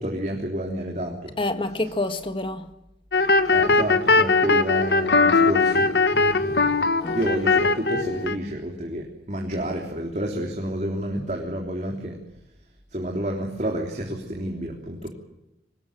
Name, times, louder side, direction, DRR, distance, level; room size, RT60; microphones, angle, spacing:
voice 1, 0.0-1.3 3.5-5.9 6.1-6.7 7.1-12.1 12.9-15.1, equal, 40° right, 3.6 m, -29 dB
voice 2, 1.4-2.7 7.0-7.2, left 2 dB, 30° left, 1.6 m, -27 dB
sound 1, 3.1-8.3, left 3 dB, 70° left, 1.4 m, -20 dB
24.0 x 19.5 x 9.0 m
head